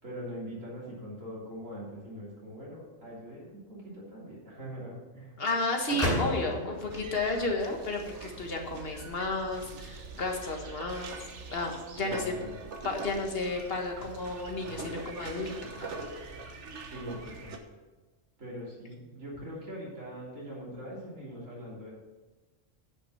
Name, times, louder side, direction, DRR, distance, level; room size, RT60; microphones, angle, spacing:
voice 1, 0.0-5.3 12.0-12.6 16.9-17.6 18.4-21.9, equal, 85° right, -6 dB, 3.8 m, -42 dB
voice 2, 5.4-11.2 11.5-12.3 12.8-15.9, left 2 dB, 50° left, 2 dB, 1.7 m, -32 dB
sound 1, 5.9-7.8, equal, 25° left, 4.1 m, -33 dB
sound 2, 6.9-17.6, right 3 dB, 65° right, 1.4 m, -43 dB
9.8 x 6.2 x 7.0 m, 1.3 s
omnidirectional pair, 1.3 m